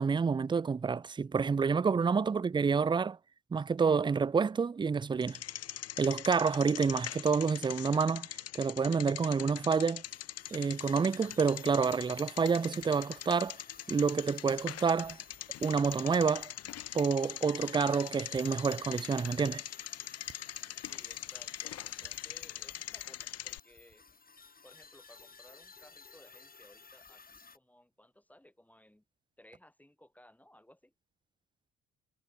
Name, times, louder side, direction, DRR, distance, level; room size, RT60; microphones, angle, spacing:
voice 1, 0.0-3.2 3.5-5.4 6.0-8.3 8.5-10.0 10.5-13.6 13.9-15.2 15.6-16.5 16.9-19.6, right 5 dB, 15° right, 0.3 m, -28 dB
Bicycle, 5.2-23.6, left 12 dB, 55° left, 0.6 m, -42 dB
sound 1, 9.8-27.6, left 4 dB, 30° left, 2.8 m, -56 dB
voice 2, 20.9-24.0 24.6-29.0 29.4-30.9, left 1 dB, 5° left, 4.0 m, -60 dB
sound 2, 24.2-26.3, right 7 dB, 50° right, 5.6 m, -70 dB
cardioid pair, 90°, 30 cm